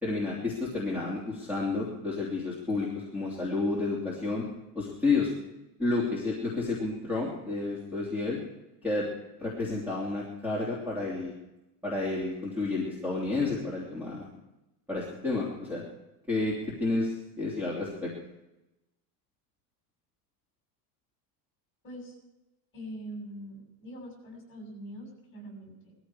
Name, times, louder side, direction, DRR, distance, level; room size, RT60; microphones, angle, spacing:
voice 1, 0.0-4.4 4.7-5.3 5.8-8.4 8.8-9.1 9.4-11.3 11.8-14.2 14.9-15.8 16.3-16.5 16.8-18.1, left 3 dB, 5° right, -6 dB, 3.1 m, -30 dB
voice 2, 21.8-22.1 22.7-25.9, right 1 dB, 25° left, 0 dB, 7.2 m, -43 dB
20.5 x 14.5 x 4.9 m, 0.95 s
cardioid pair, 170°, 48 cm